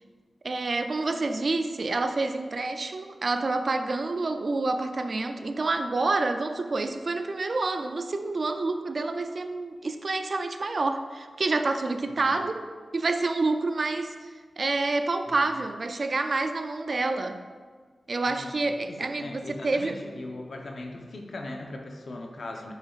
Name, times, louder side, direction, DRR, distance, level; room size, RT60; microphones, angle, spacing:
voice 1, 0.4-12.6 12.9-14.3 14.6-17.4 18.1-20.0, right 3 dB, 50° right, 7 dB, 0.4 m, -28 dB
voice 2, 18.9-22.7, left 2 dB, 65° left, 2 dB, 0.8 m, -39 dB
6.9 x 6.4 x 2.4 m, 1.5 s
wide cardioid pair, 100°, 0 cm